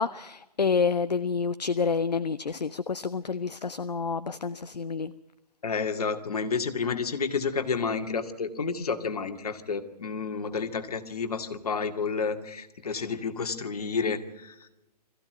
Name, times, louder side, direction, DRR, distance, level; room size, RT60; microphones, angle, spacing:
voice 1, 0.0-5.1, left 5 dB, 80° left, 13 dB, 0.7 m, -28 dB
voice 2, 5.6-14.7, left 5 dB, 65° left, 7 dB, 2.2 m, -30 dB
21.0 x 15.0 x 9.0 m, 0.97 s
figure-of-eight pair, 125°, 21 cm